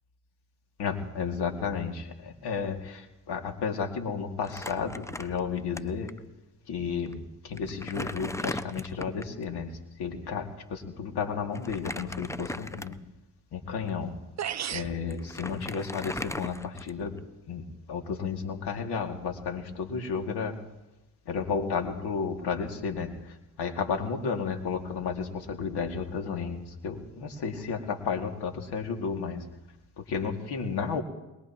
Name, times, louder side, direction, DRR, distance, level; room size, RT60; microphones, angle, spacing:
voice 1, 0.8-6.1 6.7-13.0 13.5-14.2 14.7-20.6 21.3-29.5 30.0-31.0, left 5 dB, 70° left, 4 dB, 2.4 m, -32 dB
Crumpling crinkling, 4.4-5.8 6.1-6.2 7.1-7.2 7.6-9.4 11.5-13.2 13.7-13.9 14.8-14.9 15.1-17.2, left 1 dB, 5° left, 0.7 m, -38 dB
sound 1, 14.0-14.1 14.4-15.0, right 9 dB, 40° right, 0.8 m, -33 dB
23.0 x 21.0 x 3.0 m, 0.98 s
hypercardioid pair, 50°, 41 cm